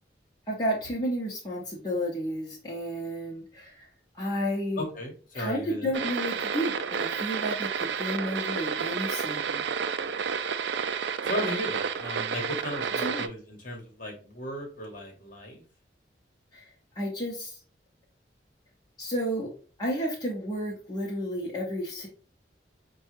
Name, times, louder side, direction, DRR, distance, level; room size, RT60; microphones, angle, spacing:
voice 1, 0.5-3.9 4.2-4.9 5.3-9.6 13.0-13.2 16.5-16.6 17.0-17.5 19.0-19.5 19.8-22.1, equal, 20° left, -4 dB, 0.8 m, -32 dB
voice 2, 4.8-5.9 11.2-15.6, left 1 dB, 45° left, 1 dB, 1.1 m, -36 dB
sound 1, 5.9-13.3, right 6 dB, 70° right, 0.4 m, -30 dB
5.3 x 2.3 x 3.0 m, 0.39 s
head